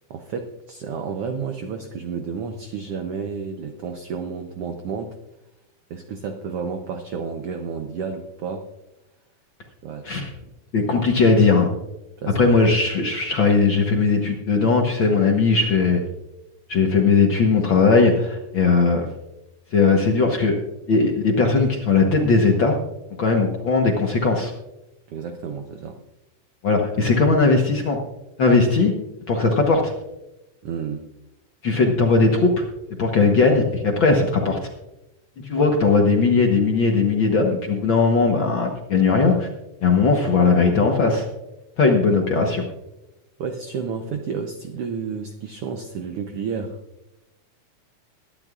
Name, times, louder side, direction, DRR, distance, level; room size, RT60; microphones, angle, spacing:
voice 1, 0.1-5.2 5.9-8.7 9.8-10.2 12.2-12.4 25.1-26.0 30.6-31.1 35.5-35.7 43.4-46.8, right 6 dB, 80° right, 6 dB, 1.3 m, -31 dB
voice 2, 10.7-11.7 12.3-16.0 16.7-19.0 19.7-20.6 20.9-22.8 23.2-24.5 26.6-28.0 28.4-28.9 29.3-29.9 31.6-32.6 33.0-34.6 35.4-39.5 39.8-41.3 41.8-42.6, left 4 dB, 60° left, 1 dB, 1.3 m, -18 dB
22.0 x 11.0 x 2.4 m, 0.94 s
omnidirectional pair, 3.7 m